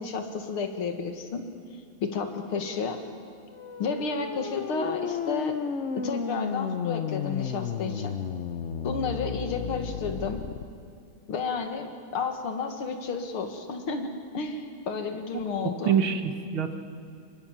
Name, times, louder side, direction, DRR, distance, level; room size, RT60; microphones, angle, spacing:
voice 1, 0.0-1.4 2.0-3.0 3.8-5.6 6.0-8.1 8.8-10.4 11.3-16.0, left 4 dB, 85° left, 5 dB, 2.7 m, -32 dB
sound 1, 3.5-10.6, left 7 dB, 50° left, 0.8 m, -33 dB
voice 2, 15.3-16.7, right 7 dB, 70° right, 7 dB, 2.2 m, -27 dB
25.5 x 22.5 x 7.5 m, 2.4 s
omnidirectional pair, 2.3 m